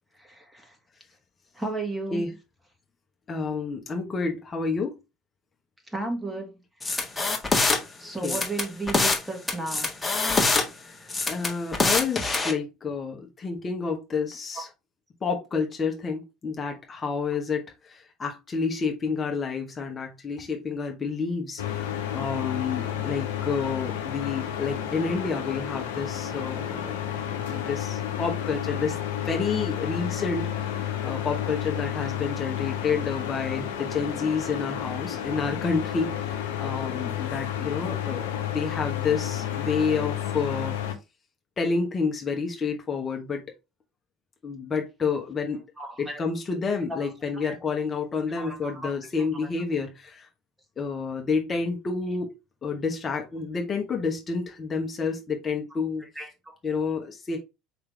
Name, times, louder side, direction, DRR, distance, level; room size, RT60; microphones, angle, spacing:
voice 1, 0.2-0.7 1.6-2.2 5.9-6.5 6.9-7.0 8.0-9.9 45.8-46.3 46.9-47.5 48.4-48.9 49.4-49.5 56.2-56.3, right 2 dB, 10° right, 1.8 m, -34 dB
voice 2, 3.3-5.0 8.2-8.4 10.8-14.7 15.2-27.0 27.5-40.8 41.6-43.4 44.4-45.6 46.0-50.3 50.8-52.3 52.6-56.0 56.6-57.4, left 5 dB, 30° left, 1.1 m, -29 dB
sound 1, 6.8-7.8 8.2-9.2 9.5-10.6 11.1-12.5, left 3 dB, 15° left, 1.4 m, -24 dB
sound 2, 21.6-40.9, left 10 dB, 80° left, 0.9 m, -31 dB
5.0 x 3.2 x 3.3 m
hypercardioid pair, 70°, 0 cm